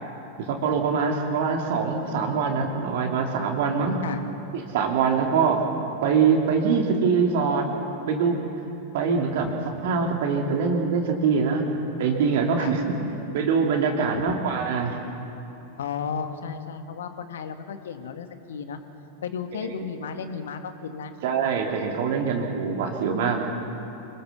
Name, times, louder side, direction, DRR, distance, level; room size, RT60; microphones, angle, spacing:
voice 1, 0.4-4.0 4.5-5.6 6.0-7.7 8.1-8.4 8.9-9.5 9.8-11.6 12.0-12.8 13.3-15.0 21.2-23.4, right 5 dB, 50° right, 1 dB, 2.9 m, -23 dB
voice 2, 15.8-18.8 19.2-21.1, left 6 dB, 60° left, 8 dB, 1.8 m, -34 dB
26.5 x 19.5 x 7.0 m, 3.0 s
figure-of-eight pair, 90°, 0 cm